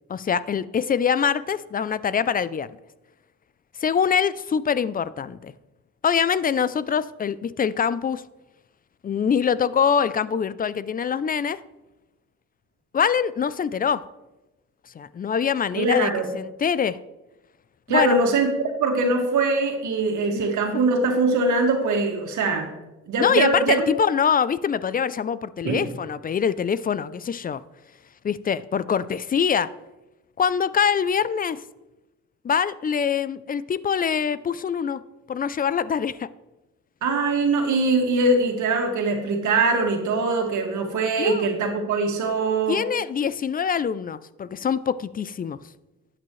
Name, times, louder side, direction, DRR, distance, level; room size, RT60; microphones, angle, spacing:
voice 1, 0.1-2.7 3.8-5.5 6.0-8.2 9.0-11.6 12.9-14.0 14.9-17.0 17.9-18.2 23.2-27.6 28.2-29.7 30.4-31.6 32.4-35.0 35.3-36.3 41.2-41.5 42.7-45.6, left 7 dB, 30° left, 17 dB, 0.4 m, -24 dB
voice 2, 15.8-16.3 17.9-22.7 23.1-23.8 25.6-25.8 37.0-42.8, right 3 dB, 75° right, 2 dB, 2.1 m, -22 dB
11.5 x 8.8 x 3.2 m, 1.0 s
cardioid pair, 90°, 30 cm